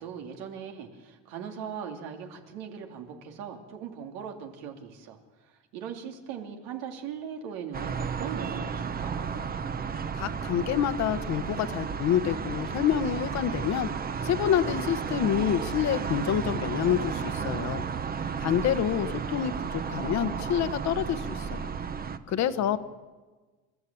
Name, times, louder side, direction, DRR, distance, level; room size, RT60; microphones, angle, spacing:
voice 1, 0.0-5.2 5.5-9.3 18.1-19.0 22.3-22.8, right 7 dB, 90° right, 3 dB, 3.1 m, -40 dB
sound 1, 7.7-22.2, right 6 dB, 25° right, 0.9 m, -33 dB
voice 2, 10.2-13.9 14.2-17.8 18.4-21.7 22.3-22.8, left 9 dB, 50° left, 11 dB, 1.2 m, -27 dB
29.5 x 13.5 x 8.6 m, 1.3 s
cardioid pair, 135°, 35 cm